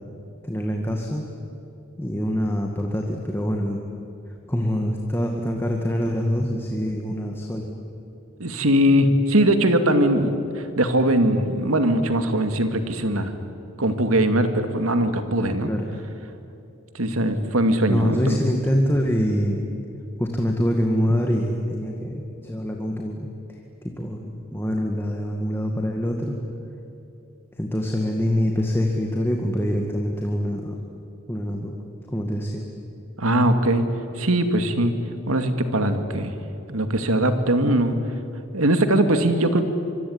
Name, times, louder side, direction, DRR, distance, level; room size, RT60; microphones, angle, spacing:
voice 1, 0.4-1.2 2.0-3.8 4.5-7.7 15.6-15.9 17.9-19.6 20.2-23.3 23.8-26.4 27.6-30.8 31.3-31.7 32.1-32.6, equal, 10° left, 1 dB, 2.0 m, -25 dB
voice 2, 8.4-10.4 10.8-13.3 13.8-15.7 16.9-18.4 33.2-33.8 34.2-34.9 35.3-36.3 36.7-38.0 38.5-39.6, right 1 dB, 85° right, 8 dB, 2.3 m, -20 dB
25.5 x 24.5 x 9.7 m, 2.9 s
head